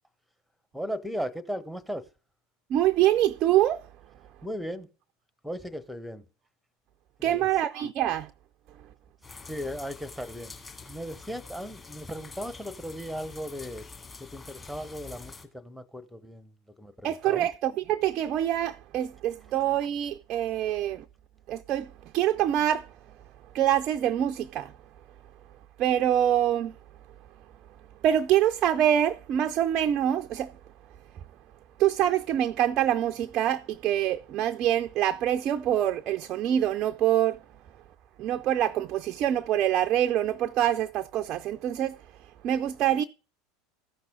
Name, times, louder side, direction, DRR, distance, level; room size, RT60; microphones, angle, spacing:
voice 1, 0.7-2.1 4.4-4.9 5.4-6.2 7.2-7.5 9.5-10.5 10.8-13.8 14.2-17.5, equal, ahead, 0.9 m, -37 dB
voice 2, 2.7-3.9 7.2-8.3 17.0-21.0 21.5-22.9 23.5-24.7 25.8-26.7 28.0-30.5 31.8-37.4 38.2-42.0 42.4-43.0, right 11 dB, 40° right, 0.4 m, -25 dB
sound 1, 9.2-15.4, left 4 dB, 20° left, 2.2 m, -46 dB
14.5 x 6.0 x 3.7 m
figure-of-eight pair, 75°, 0 cm